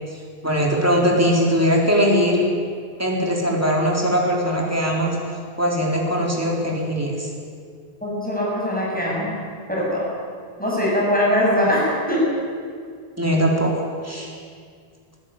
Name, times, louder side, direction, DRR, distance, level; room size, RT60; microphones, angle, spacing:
voice 1, 0.1-2.4 3.0-5.2 5.6-7.3 13.2-13.7 14.0-14.4, equal, 15° right, -2 dB, 4.0 m, -20 dB
voice 2, 8.0-9.3 9.7-10.1 10.6-12.2, equal, 10° left, -5 dB, 7.9 m, -21 dB
20.0 x 16.0 x 9.1 m, 2.1 s
omnidirectional pair, 1.1 m